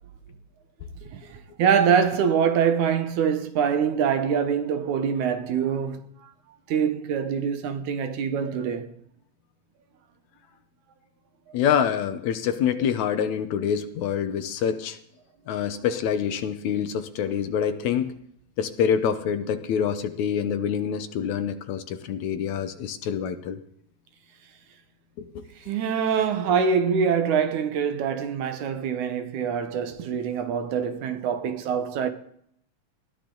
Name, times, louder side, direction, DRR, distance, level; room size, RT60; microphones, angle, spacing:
voice 1, 1.1-6.3 6.7-8.9 25.6-32.1, right 7 dB, 75° right, 2.5 m, -24 dB
voice 2, 11.5-15.0 15.5-18.1 18.6-23.6, left 8 dB, 70° left, 2.1 m, -26 dB
20.5 x 14.0 x 3.9 m
omnidirectional pair, 3.6 m